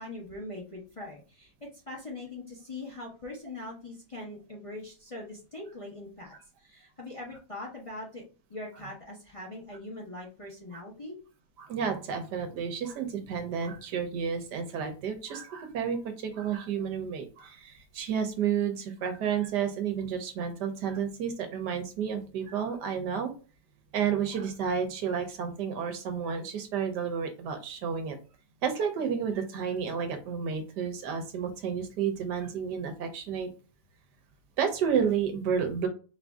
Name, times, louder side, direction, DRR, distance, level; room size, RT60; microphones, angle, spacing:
voice 1, 0.0-8.2 8.5-11.2, left 2 dB, 25° left, -1 dB, 0.8 m, -42 dB
voice 2, 11.6-23.3 23.9-28.2 28.6-33.5 34.6-35.9, right 7 dB, 80° right, 6 dB, 1.4 m, -31 dB
4.7 x 2.6 x 3.5 m, 0.36 s
omnidirectional pair, 1.8 m